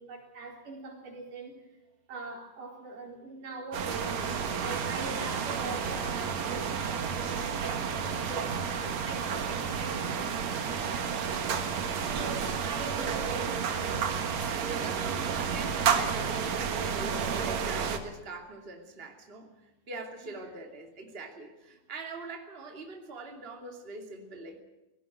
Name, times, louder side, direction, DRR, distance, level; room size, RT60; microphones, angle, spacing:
voice 1, 0.0-1.6 2.1-4.2 4.6-11.4 12.0-13.9 20.2-20.5, right 3 dB, 80° right, 1 dB, 5.6 m, -42 dB
sound 1, 3.7-18.0, right 6 dB, 60° right, 2.7 m, -31 dB
voice 2, 14.7-24.6, right 3 dB, 20° right, 3 dB, 2.6 m, -43 dB
18.0 x 18.0 x 9.1 m, 0.97 s
omnidirectional pair, 3.6 m